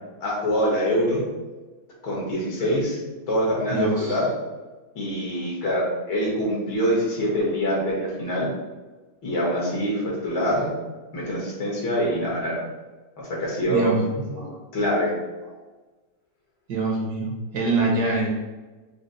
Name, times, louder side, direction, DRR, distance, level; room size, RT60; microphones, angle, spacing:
voice 1, 0.2-1.2 2.0-3.0 3.3-4.3 5.0-8.5 9.2-10.7 11.1-12.6 13.2-13.9 14.7-15.1, equal, 80° left, -4 dB, 2.1 m, -24 dB
voice 2, 3.7-4.2 13.7-14.6 16.7-18.3, right 3 dB, 65° right, -2 dB, 1.1 m, -25 dB
5.0 x 2.0 x 3.9 m, 1.2 s
omnidirectional pair, 2.2 m